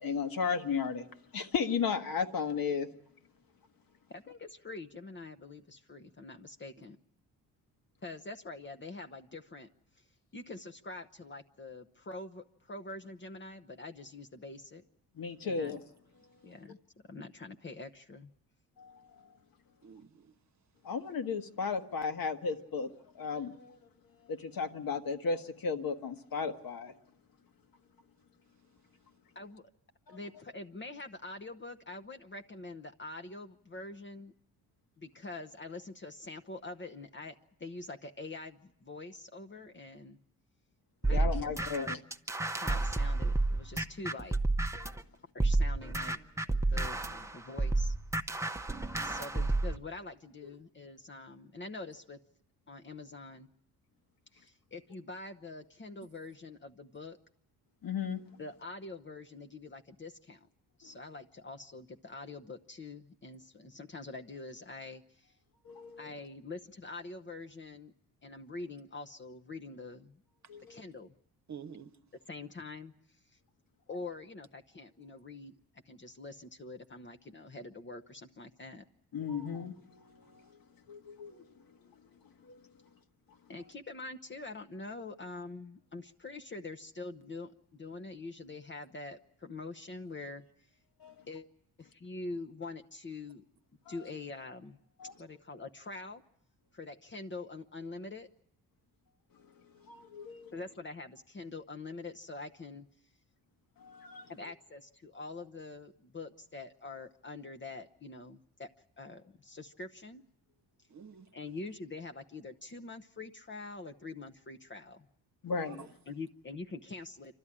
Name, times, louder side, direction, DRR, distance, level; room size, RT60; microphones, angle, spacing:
voice 1, 0.0-1.1 1.3-2.9 15.1-15.8 18.8-19.1 20.8-22.9 23.1-23.8 24.3-26.9 30.1-30.2 41.1-42.0 44.8-44.9 50.4-50.5 57.8-58.2 60.8-60.9 65.6-66.1 70.5-70.8 79.1-80.5 80.9-81.4 81.8-81.9 82.4-82.6 91.0-91.2 93.9-94.0 95.0-95.1 99.9-100.5 103.8-104.3 115.4-115.9, left 5 dB, 55° left, 1.5 m, -35 dB
voice 2, 4.1-7.0 8.0-9.7 10.0-10.1 10.3-14.8 15.4-15.8 16.4-16.8 17.0-18.3 29.3-29.7 30.1-34.3 35.0-40.2 41.1-41.9 42.5-44.4 45.3-46.2 46.7-47.9 48.3-48.6 49.0-52.2 52.7-53.5 54.3-57.2 58.4-60.5 60.8-65.3 66.0-67.9 68.2-70.2 70.7-71.1 72.3-72.9 73.9-75.5 75.9-78.8 83.5-90.4 91.3-91.4 91.8-93.4 93.9-94.8 95.2-96.2 96.7-98.3 100.5-102.9 104.3-108.7 109.0-110.2 111.3-115.1 116.1-117.3, left 3 dB, 30° left, 0.9 m, -45 dB
voice 3, 19.8-20.3 42.6-42.8 71.5-72.0 110.9-111.3 115.6-115.9, right 7 dB, 45° right, 1.1 m, -48 dB
sound 1, 41.0-45.0 45.4-49.8, right 2 dB, 5° right, 0.8 m, -31 dB
27.5 x 12.5 x 9.9 m
supercardioid pair, 65°, 41 cm